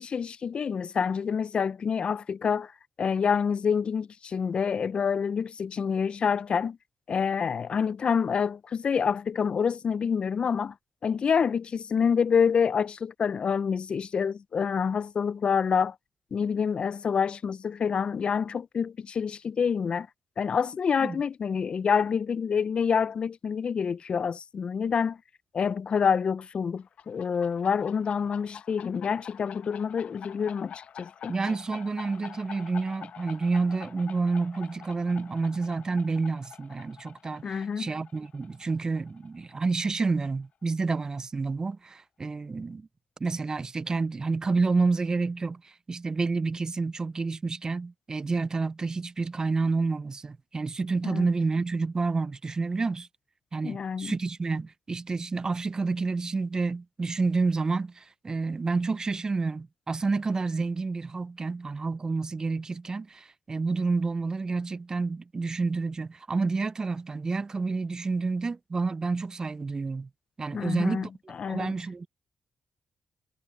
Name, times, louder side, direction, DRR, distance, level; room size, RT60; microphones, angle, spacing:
voice 1, 0.0-2.7 3.0-6.8 7.1-10.7 11.0-15.9 16.3-20.1 20.4-25.2 25.5-31.3 37.4-37.9 51.0-51.3 53.6-54.1 70.5-71.1 71.4-71.7, left 6 dB, 45° left, 0.3 m, -27 dB
sound 1, 26.8-40.2, left 8 dB, 65° left, 0.8 m, -47 dB
voice 2, 31.3-42.9 43.2-53.1 53.5-70.1 70.4-72.1, right 4 dB, 30° right, 0.3 m, -29 dB
cardioid pair, 95°, 2 cm